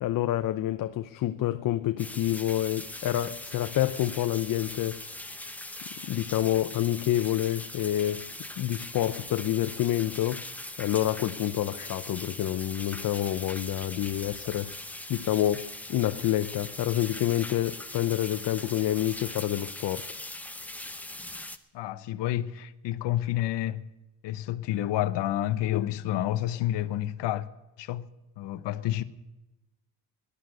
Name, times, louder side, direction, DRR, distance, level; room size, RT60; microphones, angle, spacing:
voice 1, 0.0-5.0 6.0-8.3 8.6-10.5 10.8-14.7 15.1-20.1 25.7-25.9, left 13 dB, 50° left, 0.7 m, -28 dB
sound 1, 2.0-21.6, left 2 dB, 5° left, 0.7 m, -41 dB
voice 2, 21.7-23.8 24.2-27.5 27.8-28.0 28.4-29.0, left 13 dB, 75° left, 1.1 m, -29 dB
18.0 x 11.5 x 6.5 m
cardioid pair, 170°, 42 cm